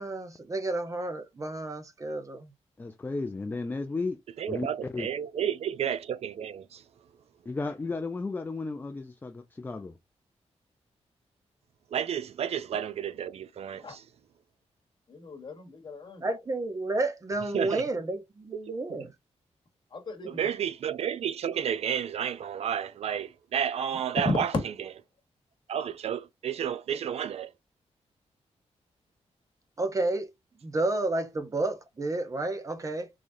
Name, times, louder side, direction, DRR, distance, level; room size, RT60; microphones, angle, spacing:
voice 1, 0.0-2.5 16.2-19.1 29.8-30.3 30.6-33.1, right 2 dB, 30° right, 0.7 m, -31 dB
voice 2, 2.8-4.2 4.5-5.1 7.5-10.0, left 3 dB, 15° left, 0.4 m, -34 dB
voice 3, 4.4-6.8 11.9-14.0 17.5-17.8 18.7-18.8 20.3-24.5 25.7-27.5, right 8 dB, 65° right, 0.4 m, -31 dB
voice 4, 15.1-16.3 19.9-20.4 24.2-24.5, left 2 dB, 45° left, 1.1 m, -34 dB
3.6 x 3.2 x 2.6 m
wide cardioid pair, 140°, 12 cm